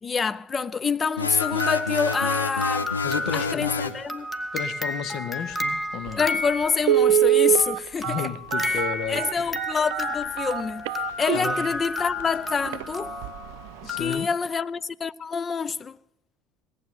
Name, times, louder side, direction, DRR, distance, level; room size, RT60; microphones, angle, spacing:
voice 1, 0.0-2.9 3.3-4.3 6.2-8.3 8.6-8.8 9.1-13.2 14.0-16.0, left 5 dB, 30° left, 0.5 m, -27 dB
sound 1, 1.2-4.0, left 4 dB, 85° left, 0.8 m, -29 dB
sound 2, 1.4-7.2 8.0-14.2, left 2 dB, 10° left, 1.6 m, -32 dB
voice 2, 3.0-3.9 4.5-6.2 8.0-9.3 11.3-11.7 13.8-14.3, left 9 dB, 55° left, 1.2 m, -33 dB
Telephone, 6.1-6.2 6.8-11.7 12.2-12.3 12.7-12.8 13.2-13.5 13.8-13.9, right 12 dB, 65° right, 0.6 m, -23 dB
18.5 x 8.2 x 9.4 m
figure-of-eight pair, 65°, 0 cm